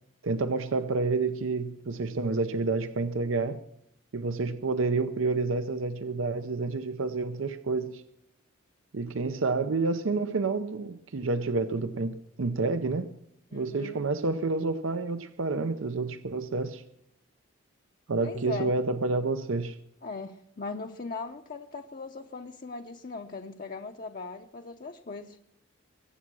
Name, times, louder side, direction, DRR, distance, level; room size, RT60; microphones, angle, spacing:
voice 1, 0.2-3.6 4.1-8.0 8.9-13.1 13.5-16.8 18.1-19.8, right 3 dB, 80° right, 0.6 m, -29 dB
voice 2, 13.5-14.0 18.2-18.8 20.0-25.4, left 4 dB, 45° left, 0.7 m, -39 dB
23.0 x 8.6 x 6.1 m
head